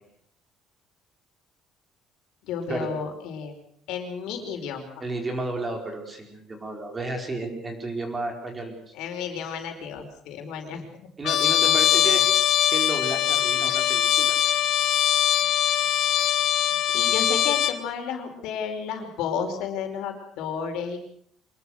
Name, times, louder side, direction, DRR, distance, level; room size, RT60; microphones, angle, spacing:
voice 1, 2.4-3.5 3.9-5.0 9.0-10.9 11.5-11.7 12.0-12.2 16.7-21.1, left 6 dB, 75° left, 5 dB, 4.9 m, -32 dB
voice 2, 5.0-8.9 11.2-12.2 12.7-14.3, right 2 dB, 15° right, 3 dB, 4.7 m, -32 dB
Trumpet, 11.2-17.8, left 11 dB, 55° left, 1.8 m, -22 dB
25.0 x 21.5 x 6.5 m, 0.67 s
cardioid pair, 170°, 0 cm